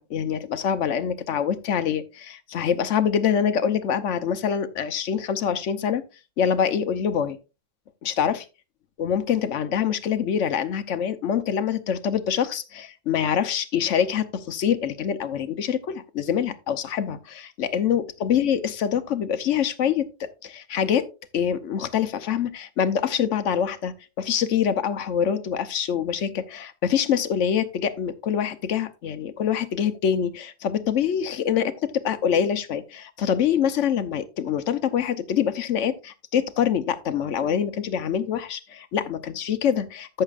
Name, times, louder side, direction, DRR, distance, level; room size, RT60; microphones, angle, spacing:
voice 1, 0.0-6.0 6.4-7.4 8.0-8.4 9.0-21.1 21.3-40.2, left 8 dB, 80° left, 1.2 m, -25 dB
13.5 x 6.7 x 2.4 m
omnidirectional pair, 1.2 m